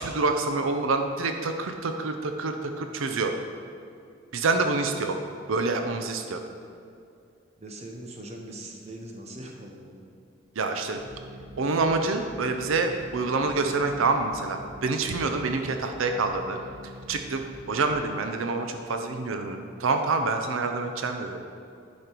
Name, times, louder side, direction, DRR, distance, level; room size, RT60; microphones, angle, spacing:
voice 1, 0.0-3.3 4.3-5.2 5.5-6.4 10.6-11.0 11.6-16.6 17.1-17.4 17.7-21.4, right 3 dB, 85° right, 5 dB, 0.6 m, -27 dB
voice 2, 7.6-10.1 17.6-17.8, right 1 dB, 35° right, 1 dB, 0.9 m, -42 dB
sound 1, 10.9-17.9, equal, 60° right, 1.3 m, -45 dB
10.5 x 5.1 x 4.5 m, 2.5 s
head